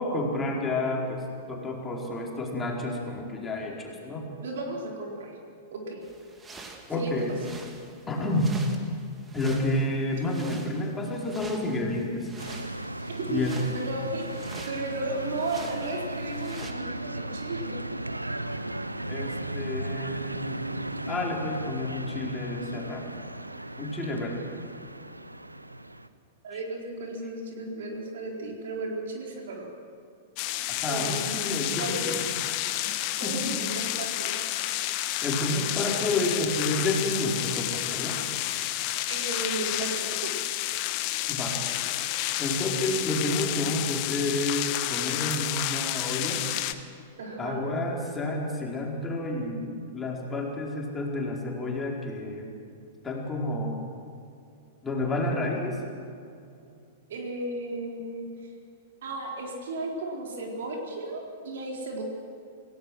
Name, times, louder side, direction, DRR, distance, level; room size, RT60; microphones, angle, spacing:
voice 1, 0.0-4.2 6.9-7.3 8.1-8.6 9.3-12.3 13.3-13.6 19.1-23.1 23.8-24.4 30.8-32.2 33.2-33.5 34.6-34.8 35.2-38.2 41.3-41.6 42.4-46.4 47.4-52.5 53.0-53.8 54.8-55.8, left 2 dB, 15° left, -1 dB, 4.6 m, -30 dB
voice 2, 4.4-5.4 5.7-6.0 7.0-7.2 13.2-13.5 13.8-14.3 14.7-17.7 24.2-24.3 26.4-29.7 30.9-31.2 31.8-32.0 33.2-34.3 39.1-40.3 47.2-47.6 57.1-58.5 59.0-62.0, right 2 dB, 60° right, 0 dB, 4.3 m, -34 dB
sound 1, 6.0-16.7, right 3 dB, 15° right, 2.4 m, -47 dB
sound 2, 12.4-26.1, right 1 dB, 90° right, 0.9 m, -36 dB
sound 3, 30.4-46.7, left 15 dB, 40° left, 1.2 m, -30 dB
28.0 x 17.5 x 6.4 m, 2.5 s
figure-of-eight pair, 100°, 0 cm